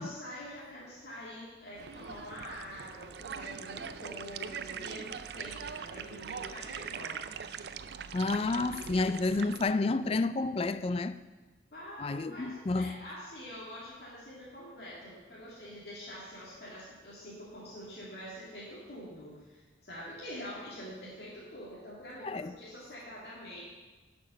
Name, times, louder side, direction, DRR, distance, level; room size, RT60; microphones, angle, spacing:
voice 1, 0.0-7.7 11.7-23.6, equal, 60° left, 2.2 m, -45 dB
sound 1, 1.7-9.6, right 7 dB, 60° right, 0.4 m, -42 dB
voice 2, 8.1-11.2 12.0-13.0 22.2-22.5, left 3 dB, 30° left, 0.3 m, -30 dB
11.0 x 6.0 x 6.2 m
head